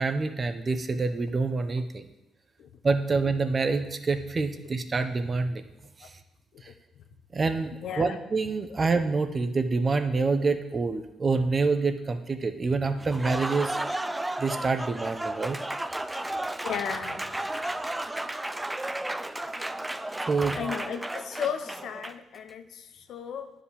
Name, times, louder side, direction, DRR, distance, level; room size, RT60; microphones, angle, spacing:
voice 1, 0.0-2.1 2.8-5.6 6.0-6.1 6.6-6.7 7.3-13.8 14.4-15.6 20.3-20.6, right 4 dB, 35° right, 9 dB, 0.9 m, -27 dB
voice 2, 7.8-8.2 8.7-8.8 16.6-17.3 20.5-23.5, left 8 dB, 70° left, 8 dB, 0.9 m, -35 dB
Applause, 13.0-22.4, right 1 dB, 10° right, 0.5 m, -33 dB
9.8 x 5.0 x 7.0 m, 0.96 s
cardioid pair, 90°, 0 cm